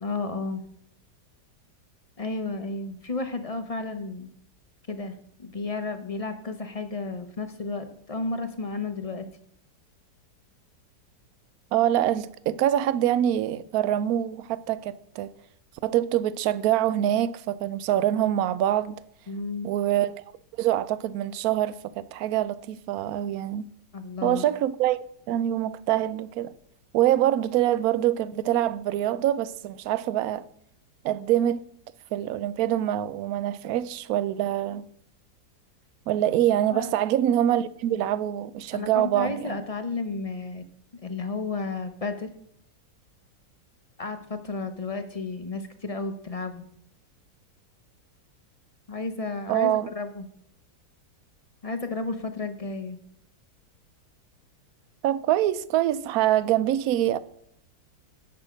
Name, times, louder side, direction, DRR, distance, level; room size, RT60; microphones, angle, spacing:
voice 1, 0.0-0.6 2.2-4.3 4.9-9.3 19.3-19.7 23.9-24.4 36.7-36.9 38.7-40.6 41.0-42.3 44.0-46.7 48.9-50.3 51.6-53.0, left 3 dB, 45° left, 0.4 m, -32 dB
voice 2, 11.7-15.3 15.8-18.9 19.6-20.1 20.6-23.7 24.2-25.0 25.3-26.5 26.9-30.4 31.0-31.6 32.1-34.9 36.1-39.6 49.5-49.9 55.0-57.2, right 12 dB, 70° right, 1.0 m, -25 dB
10.5 x 8.2 x 5.0 m
omnidirectional pair, 1.8 m